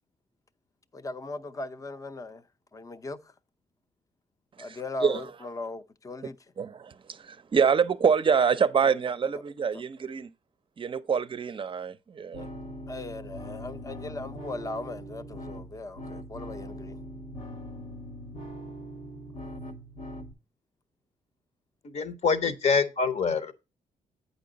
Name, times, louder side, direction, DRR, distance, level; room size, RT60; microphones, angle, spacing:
voice 1, 0.9-2.4 2.7-3.3 4.6-6.4 8.8-8.9 12.4-12.5 12.9-17.0 19.4-19.5, left 2 dB, 25° left, 0.6 m, -38 dB
voice 2, 4.6-5.3 6.6-10.3 10.8-12.5, right 6 dB, 40° right, 0.5 m, -26 dB
sound 1, 12.3-20.3, equal, 75° left, 1.4 m, -41 dB
voice 3, 21.8-23.5, left 5 dB, 55° left, 0.9 m, -25 dB
8.4 x 5.2 x 3.9 m
cardioid pair, 70°, 14 cm